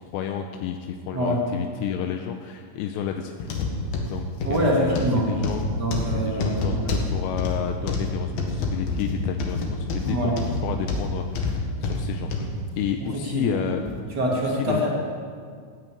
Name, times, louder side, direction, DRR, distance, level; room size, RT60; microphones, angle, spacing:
voice 1, 0.0-3.6 4.1-5.7 6.1-10.4 10.6-12.5 12.8-13.8 14.5-14.8, left 9 dB, 80° left, 5 dB, 2.6 m, -31 dB
sound 1, 3.4-12.5 13.1-13.2 13.9-14.0, left 3 dB, 60° left, 3.0 m, -27 dB
voice 2, 4.4-5.3 5.8-6.9 10.0-10.3 13.3-13.8 14.1-14.9, right 1 dB, 40° right, -2 dB, 1.5 m, -25 dB
16.5 x 9.9 x 8.6 m, 2.1 s
omnidirectional pair, 5.9 m